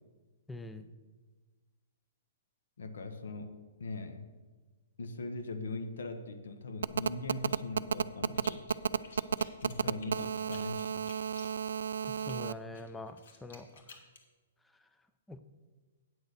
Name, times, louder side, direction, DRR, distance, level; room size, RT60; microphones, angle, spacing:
voice 1, 0.5-0.9 12.3-13.7 15.3-15.4, left 2 dB, 5° left, 10 dB, 0.4 m, -43 dB
voice 2, 2.8-3.5 3.8-4.2 5.0-8.6 9.0-9.2 9.6-11.0, left 3 dB, 85° left, 8 dB, 1.3 m, -41 dB
Telephone, 6.8-12.5, right 7 dB, 85° right, 0.3 m, -32 dB
sound 1, 8.3-8.8 9.0-12.4 12.7-14.2, left 5 dB, 65° left, 1.6 m, -54 dB
9.1 x 6.4 x 6.7 m, 1.4 s
hypercardioid pair, 170°, 0 cm